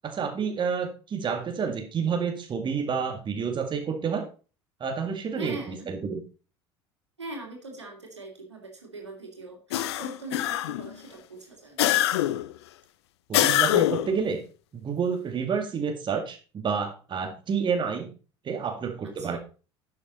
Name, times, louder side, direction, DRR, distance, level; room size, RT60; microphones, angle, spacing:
voice 1, 0.0-4.3 4.8-6.2 13.3-14.4 14.7-18.1 18.4-19.4, right 6 dB, 35° right, 4 dB, 2.0 m, -29 dB
voice 2, 5.3-5.9 7.2-11.8 19.2-19.4, right 2 dB, 90° right, 1 dB, 2.9 m, -42 dB
sound 1, 9.7-10.9 11.8-12.5 13.3-14.2, left 14 dB, 70° left, 0.6 m, -24 dB
11.0 x 7.6 x 4.1 m, 0.36 s
figure-of-eight pair, 65°, 14 cm